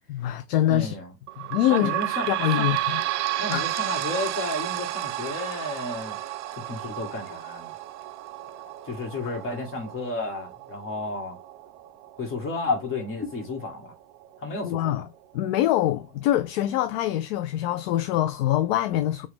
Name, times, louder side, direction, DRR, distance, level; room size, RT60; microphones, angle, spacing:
voice 1, 0.1-1.0 1.5-1.9 2.3-3.0 3.5-3.6 14.6-15.1 15.3-19.3, left 13 dB, 45° left, 0.5 m, -24 dB
voice 2, 0.7-1.1 1.7-2.3 2.6-2.7 3.4-6.2 6.5-7.7 8.8-11.4 12.2-13.9 14.4-15.0, left 2 dB, 25° left, 1.9 m, -32 dB
sound 1, 1.3-14.4 15.0-15.1 15.4-15.5 16.3-16.4, right 15 dB, 50° right, 0.6 m, -32 dB
4.6 x 2.7 x 3.5 m
hypercardioid pair, 95°, 47 cm